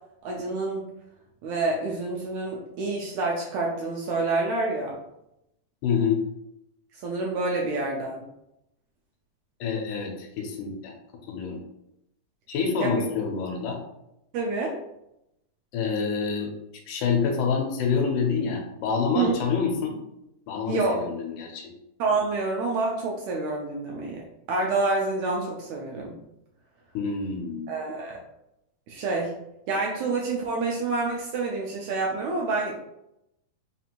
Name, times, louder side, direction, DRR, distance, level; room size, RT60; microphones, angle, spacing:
voice 1, 0.2-0.8 1.4-5.0 6.9-8.2 12.8-13.0 14.3-14.8 19.1-19.3 20.7-21.0 22.0-26.1 27.7-28.2 28.9-29.3 29.7-32.7, right 3 dB, 80° right, -1 dB, 1.7 m, -28 dB
voice 2, 5.8-6.2 9.6-10.9 11.3-11.6 12.5-13.8 15.7-16.5 16.9-20.0 20.5-21.7 26.9-27.7, left 5 dB, 80° left, 2 dB, 2.1 m, -27 dB
5.2 x 2.5 x 2.9 m, 0.83 s
omnidirectional pair, 3.6 m